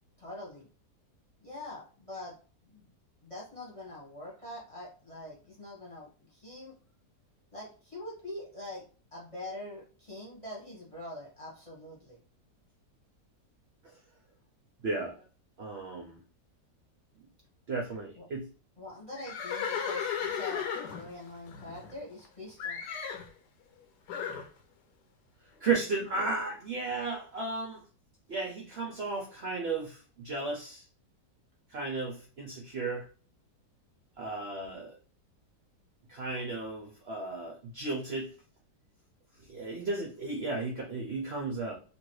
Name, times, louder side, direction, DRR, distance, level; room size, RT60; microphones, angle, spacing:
voice 1, 0.2-0.7 1.4-2.4 2.6-2.9 3.2-6.7 7.5-8.8 9.1-12.2 18.1-18.3 18.8-22.9, left 1 dB, 25° left, -4 dB, 1.0 m, -44 dB
voice 2, 14.8-15.2 15.6-16.2 17.7-18.5 25.6-27.8 28.3-30.8 31.7-33.1 34.2-34.9 36.1-38.3 39.5-41.7, right 3 dB, 60° right, 0 dB, 0.6 m, -34 dB
Livestock farm animals working animals, 19.2-22.3 22.6-23.3 24.1-24.5, left 7 dB, 80° left, 1.2 m, -35 dB
3.0 x 2.6 x 3.1 m, 0.38 s
omnidirectional pair, 1.8 m